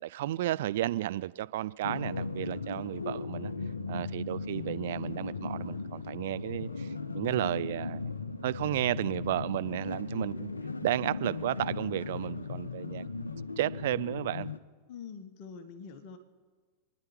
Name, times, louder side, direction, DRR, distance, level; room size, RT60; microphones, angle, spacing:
voice 1, 0.0-3.5 3.9-8.1 8.4-10.5 10.8-13.0 13.6-14.5, right 14 dB, 55° right, 0.4 m, -33 dB
sound 1, 1.8-14.6, left 4 dB, 75° left, 0.8 m, -37 dB
voice 2, 14.9-16.2, left 6 dB, 45° left, 1.4 m, -45 dB
28.0 x 10.5 x 4.5 m
figure-of-eight pair, 90°, 0 cm